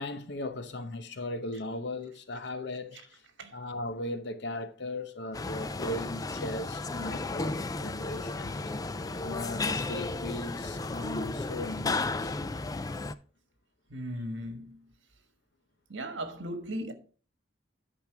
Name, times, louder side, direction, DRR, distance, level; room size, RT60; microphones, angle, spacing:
voice 1, 0.0-3.2 3.5-8.7 9.1-12.6, left 1 dB, 60° left, 0.8 m, -38 dB
sound 1, 5.3-13.1, left 3 dB, 20° left, 0.3 m, -34 dB
voice 2, 13.9-14.8 15.9-16.9, equal, 70° right, 1.5 m, -37 dB
10.5 x 4.5 x 4.6 m
head